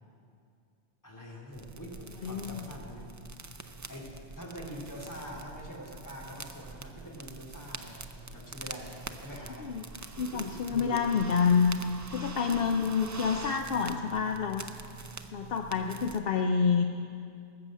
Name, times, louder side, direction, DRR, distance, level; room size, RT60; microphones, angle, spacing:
voice 1, 1.0-3.1 3.9-11.1 12.4-12.8, equal, 20° left, -4 dB, 2.6 m, -44 dB
sound 1, 1.5-16.2, right 3 dB, 25° right, 0.4 m, -45 dB
voice 2, 2.2-2.6 9.6-9.8 10.2-11.8 12.1-14.7 15.3-16.8, left 6 dB, 70° left, 5 dB, 0.8 m, -28 dB
18.5 x 7.7 x 7.4 m, 2.4 s
omnidirectional pair, 1.0 m